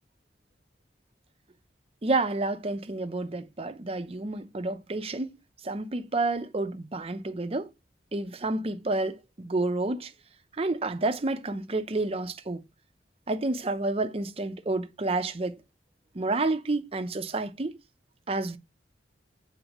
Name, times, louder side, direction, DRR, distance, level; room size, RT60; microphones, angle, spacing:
voice 1, 2.0-5.4 5.6-7.7 8.1-10.1 10.6-12.6 13.3-15.6 16.1-17.8 18.3-18.6, right 2 dB, 35° right, 0.7 m, -29 dB
7.9 x 4.4 x 3.0 m
head